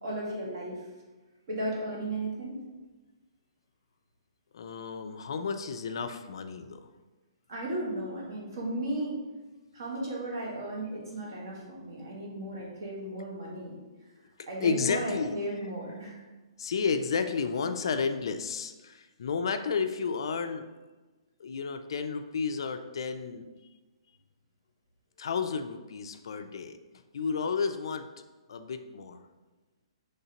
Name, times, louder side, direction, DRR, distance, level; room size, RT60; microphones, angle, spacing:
voice 1, 0.0-0.9 1.5-2.6 7.5-9.2 9.7-13.8 14.5-16.2, right 1 dB, 45° right, -3 dB, 1.3 m, -35 dB
voice 2, 4.5-6.9 14.6-15.4 16.6-20.7 21.4-23.5 25.2-26.8 27.1-28.1 28.5-29.2, left 5 dB, 55° left, 8 dB, 0.3 m, -32 dB
5.6 x 3.2 x 2.9 m, 1.2 s
hypercardioid pair, 175°, 3 cm